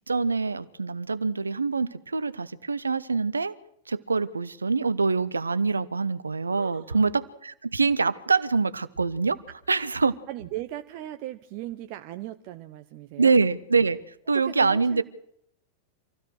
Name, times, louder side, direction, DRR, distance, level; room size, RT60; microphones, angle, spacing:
voice 1, 0.1-3.5 3.9-9.4 9.7-10.2 13.2-14.0 14.3-15.0, right 4 dB, 75° right, 16 dB, 1.0 m, -25 dB
voice 2, 6.5-7.0 10.3-13.3 14.3-15.0, right 14 dB, 45° right, 9 dB, 1.0 m, -38 dB
26.0 x 16.0 x 6.4 m, 0.74 s
figure-of-eight pair, 90°, 0 cm